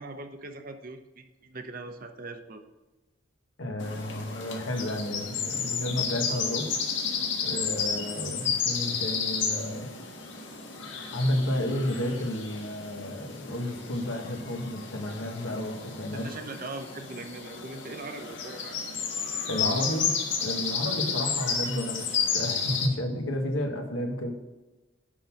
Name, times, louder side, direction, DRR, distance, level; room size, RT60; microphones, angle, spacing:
voice 1, 0.0-2.6 16.1-18.8, right 2 dB, 45° right, 7 dB, 0.9 m, -41 dB
voice 2, 3.6-6.7 7.4-9.9 11.1-16.3 19.5-24.3, left 1 dB, 90° left, 3 dB, 1.6 m, -31 dB
sound 1, 3.8-22.9, left 6 dB, 65° left, 1.5 m, -32 dB
11.0 x 3.9 x 6.0 m, 1.1 s
head